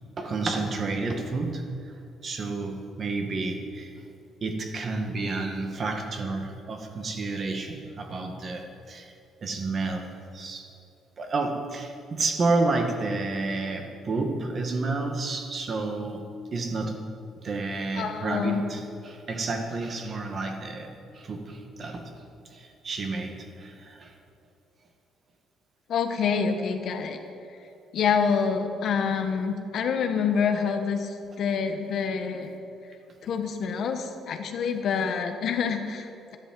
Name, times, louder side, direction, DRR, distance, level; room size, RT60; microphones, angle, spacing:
voice 1, 0.2-1.9 2.2-3.9 4.4-9.1 9.4-10.7 11.2-17.1 17.4-22.1 22.5-24.1 32.3-32.4, right 3 dB, 35° right, 3 dB, 1.8 m, -30 dB
voice 2, 18.0-18.6 25.9-27.2 27.9-32.5 33.2-36.4, left 6 dB, 55° left, 6 dB, 1.3 m, -27 dB
14.0 x 11.0 x 7.7 m, 2.6 s
cardioid pair, 155°, 0 cm